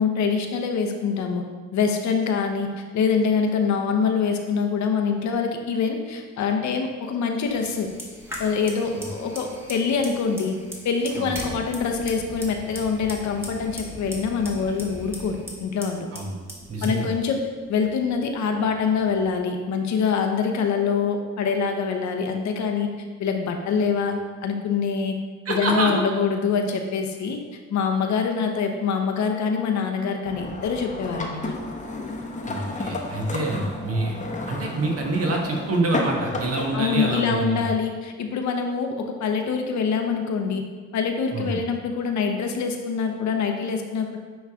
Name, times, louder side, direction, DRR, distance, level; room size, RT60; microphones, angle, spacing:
voice 1, 0.0-1.4 1.7-7.9 8.4-10.6 10.8-16.1 16.8-22.9 23.2-25.2 25.5-27.4 27.7-31.5 36.7-40.6 40.9-44.2, left 5 dB, 70° left, 4 dB, 0.8 m, -25 dB
Fire, 7.4-19.3, equal, 10° right, 1.4 m, -40 dB
voice 2, 16.7-17.1 25.4-25.9 32.5-34.2 34.5-37.6 41.3-41.6, right 2 dB, 50° right, 0 dB, 1.3 m, -26 dB
sound 1, 30.2-37.2, left 2 dB, 25° left, 0.9 m, -32 dB
9.3 x 3.2 x 3.6 m, 1.5 s
cardioid pair, 90°, 30 cm